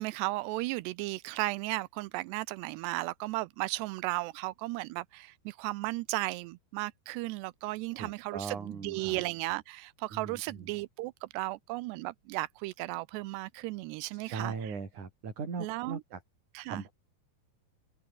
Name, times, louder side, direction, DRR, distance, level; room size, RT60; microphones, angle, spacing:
voice 1, 0.0-14.7 15.6-16.0 16.6-16.8, right 20 dB, 80° right, 2.6 m, -35 dB
voice 2, 7.9-9.2 10.1-10.7 14.1-16.2 16.7-16.9, right 5 dB, 45° right, 6.3 m, -39 dB
open air
omnidirectional pair, 5.0 m